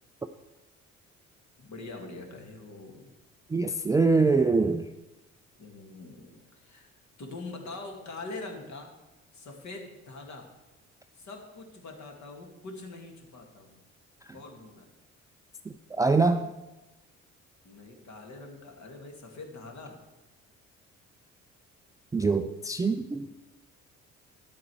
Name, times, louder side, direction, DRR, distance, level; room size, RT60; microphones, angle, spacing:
voice 1, 1.6-3.1 5.6-6.9 7.2-8.9 9.3-10.5 11.2-13.8 14.3-14.9 17.6-20.0, left 3 dB, 45° left, 3 dB, 2.1 m, -43 dB
voice 2, 3.5-4.8 15.7-16.5 22.1-23.3, right 3 dB, 10° right, 7 dB, 0.4 m, -24 dB
11.0 x 8.4 x 4.6 m, 1.0 s
figure-of-eight pair, 45°, 38 cm